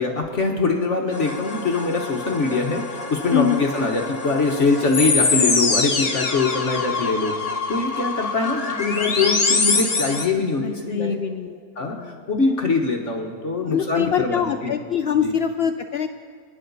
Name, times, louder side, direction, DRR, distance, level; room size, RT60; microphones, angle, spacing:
voice 1, 0.0-11.2 11.8-14.7 15.2-15.3, left 3 dB, 55° left, 2 dB, 1.4 m, -23 dB
sound 1, 1.1-10.3, left 4 dB, 30° left, 0.8 m, -25 dB
voice 2, 3.3-3.6 10.6-12.2 13.7-16.1, left 9 dB, 80° left, 7 dB, 0.5 m, -24 dB
26.5 x 10.5 x 4.0 m, 2.1 s
omnidirectional pair, 1.6 m